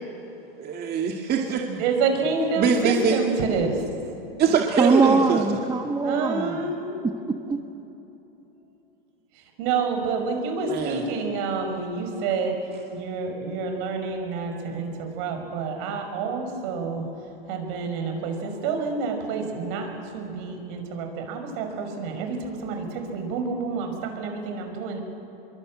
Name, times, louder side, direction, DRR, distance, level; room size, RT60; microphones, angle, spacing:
voice 1, 0.6-1.8 2.6-3.2 4.4-5.4 10.7-11.0, right 6 dB, 30° right, 2 dB, 2.2 m, -23 dB
voice 2, 1.8-3.9 6.0-7.0 9.3-12.6 12.9-25.0, right 4 dB, 55° right, 5 dB, 5.7 m, -28 dB
voice 3, 4.8-6.6 7.0-7.6, right 4 dB, 15° right, 5 dB, 1.3 m, -22 dB
25.0 x 23.0 x 8.8 m, 3.0 s
hypercardioid pair, 115°, 30 cm